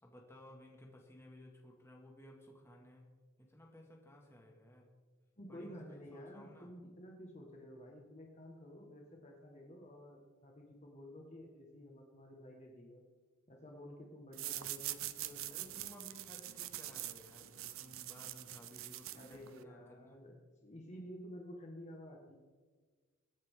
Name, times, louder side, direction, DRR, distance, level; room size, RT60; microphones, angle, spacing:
voice 1, 0.0-3.1 3.4-4.9 5.5-6.7 15.5-20.2, left 1 dB, 10° left, -1 dB, 2.1 m, -57 dB
voice 2, 5.4-13.0 13.5-15.6 19.2-22.4, equal, 35° left, 0 dB, 1.6 m, -52 dB
sound 1, 14.3-19.6, right 14 dB, 85° right, 0.6 m, -44 dB
23.5 x 9.1 x 3.8 m, 1.4 s
head